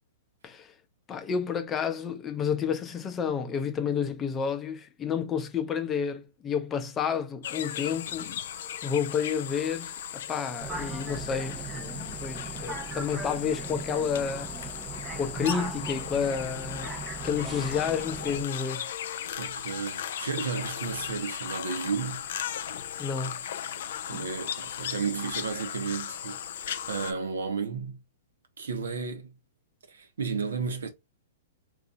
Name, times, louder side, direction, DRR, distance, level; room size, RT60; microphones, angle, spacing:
voice 1, 0.4-0.7 1.1-8.4 8.8-14.7 15.2-16.9 17.2-19.2 23.0-23.4 24.1-24.2, left 7 dB, 20° left, 0.7 m, -30 dB
sound 1, 7.4-27.1, left 9 dB, 65° left, 0.4 m, -37 dB
sound 2, 10.6-18.4, right 4 dB, 25° right, 0.8 m, -38 dB
voice 2, 19.4-22.2 24.1-26.6 26.9-28.0 28.6-29.3 29.9-30.9, right 5 dB, 80° right, 1.0 m, -33 dB
2.8 x 2.5 x 3.7 m
hypercardioid pair, 125°, 0 cm